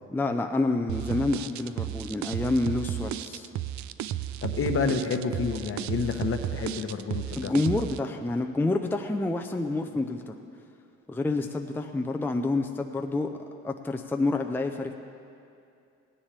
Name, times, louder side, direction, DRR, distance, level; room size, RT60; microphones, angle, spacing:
voice 1, 0.1-3.5 7.4-10.3 11.1-13.3 13.6-14.9, left 2 dB, 5° left, 4 dB, 0.5 m, -28 dB
sound 1, 0.9-8.0, right 12 dB, 70° right, 0.5 m, -33 dB
voice 2, 4.4-7.5, left 5 dB, 45° left, 6 dB, 1.0 m, -29 dB
17.5 x 10.0 x 3.4 m, 2.5 s
cardioid pair, 90°, 30 cm